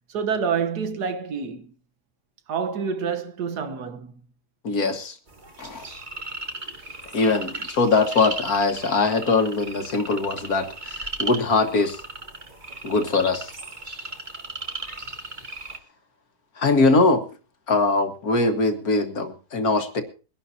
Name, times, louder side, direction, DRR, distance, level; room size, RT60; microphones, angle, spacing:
voice 1, 0.1-1.7 2.5-4.2 7.3-7.4, right 6 dB, 85° right, 1.7 m, -28 dB
voice 2, 4.6-5.2 5.6-5.9 7.1-12.0 12.8-13.5 16.6-17.3 17.7-20.0, left 3 dB, 65° left, 2.1 m, -22 dB
sound 1, 5.3-15.8, right 2 dB, 30° right, 1.6 m, -36 dB
23.0 x 11.5 x 2.8 m
omnidirectional pair, 1.7 m